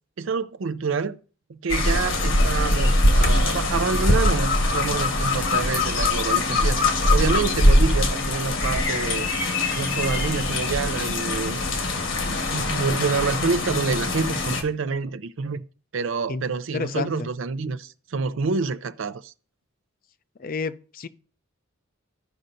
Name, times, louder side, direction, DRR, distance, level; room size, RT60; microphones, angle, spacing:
voice 1, 0.2-1.2 1.5-6.8 7.1-9.3 9.7-11.6 12.2-15.6 15.9-19.3, right 4 dB, 65° right, 0.5 m, -27 dB
sound 1, 1.7-14.6, left 2 dB, 65° left, 1.3 m, -22 dB
voice 2, 16.7-17.3 20.4-21.1, left 4 dB, 45° left, 0.5 m, -30 dB
14.5 x 5.5 x 2.6 m
head